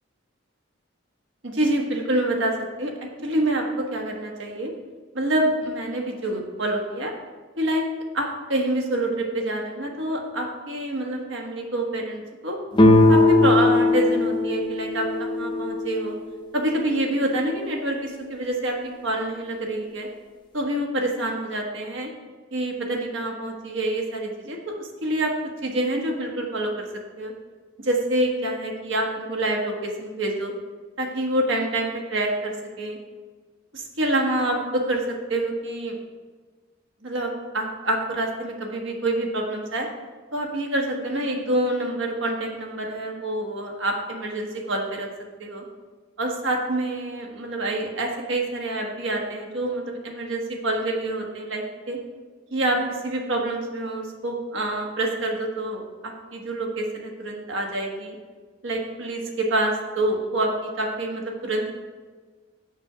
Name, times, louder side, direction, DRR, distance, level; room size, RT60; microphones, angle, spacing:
voice 1, 1.4-2.9 3.2-4.7 5.1-7.1 7.6-7.9 8.1-12.6 13.1-16.1 16.5-20.1 20.5-22.1 22.5-25.3 25.6-26.9 27.2-27.3 27.8-30.5 31.0-33.0 33.7-36.0 37.0-39.9 40.3-45.1 45.4-45.6 46.2-52.0 52.5-58.2 58.6-61.7, right 1 dB, 70° right, 1 dB, 1.4 m, -27 dB
sound 1, 12.7-16.4, left 2 dB, 25° left, 0.6 m, -19 dB
7.4 x 6.7 x 4.9 m, 1.4 s
head